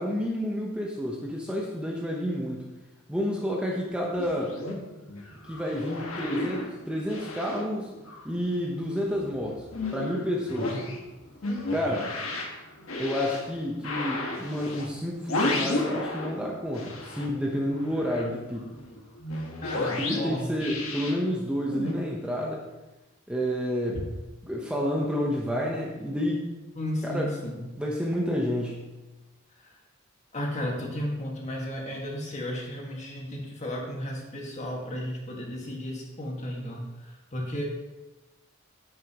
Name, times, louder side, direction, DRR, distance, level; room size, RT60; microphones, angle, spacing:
voice 1, 0.0-2.7 3.1-4.6 5.5-7.9 8.2-9.6 9.9-10.8 11.7-12.1 13.0-18.7 20.1-22.6 23.3-24.1 24.4-26.4 27.0-27.3 27.8-28.9, equal, 5° right, -2 dB, 1.0 m, -29 dB
sound 1, 3.9-8.6 8.9-16.4 16.7-21.9, left 2 dB, 85° left, 1.5 m, -34 dB
voice 2, 19.6-20.5 26.8-27.6 29.6-29.7 30.3-37.6, left 1 dB, 35° left, -1 dB, 1.9 m, -34 dB
9.7 x 8.9 x 3.0 m, 1.0 s
head